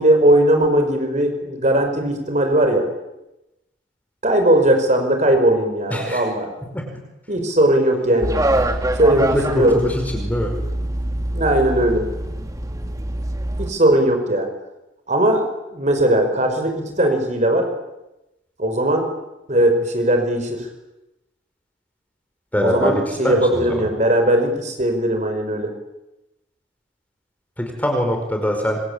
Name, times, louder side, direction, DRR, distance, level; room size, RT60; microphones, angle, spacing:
voice 1, 0.0-2.9 4.2-6.5 7.3-8.3 9.0-9.8 11.3-12.0 13.6-14.5 15.1-15.4 15.7-17.7 18.6-19.1 19.5-20.7 22.6-25.7, right 1 dB, 35° right, 5 dB, 5.4 m, -18 dB
voice 2, 5.9-6.2 6.7-6.8 9.2-10.5 22.5-23.8 27.6-28.8, equal, 10° left, 3 dB, 5.1 m, -23 dB
sound 1, 8.2-13.7, right 1 dB, 15° right, 2.1 m, -24 dB
27.0 x 25.5 x 8.8 m, 0.95 s
head